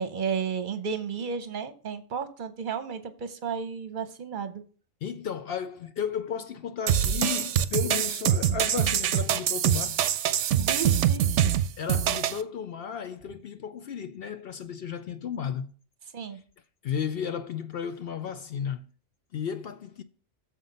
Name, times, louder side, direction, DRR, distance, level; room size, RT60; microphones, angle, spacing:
voice 1, 0.0-4.6 10.6-11.4 16.1-16.4, right 6 dB, 45° right, 0.9 m, -33 dB
voice 2, 5.0-10.0 11.8-15.8 16.8-18.9 19.3-20.0, left 7 dB, 60° left, 0.7 m, -34 dB
sound 1, 6.9-12.4, right 10 dB, 75° right, 0.9 m, -24 dB
7.1 x 5.8 x 5.3 m
omnidirectional pair, 1.3 m